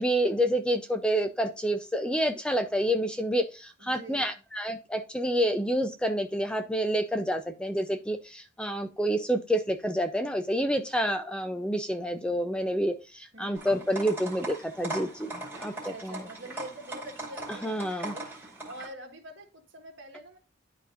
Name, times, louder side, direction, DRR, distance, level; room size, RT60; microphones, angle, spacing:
voice 1, 0.0-15.7 16.0-16.2 17.6-18.1, equal, 5° left, 0.4 m, -28 dB
voice 2, 3.8-4.4 13.3-13.9 15.7-20.4, right 1 dB, 70° right, 1.6 m, -46 dB
sound 1, 13.6-18.9, right 2 dB, 10° right, 2.4 m, -40 dB
11.5 x 4.1 x 2.5 m
head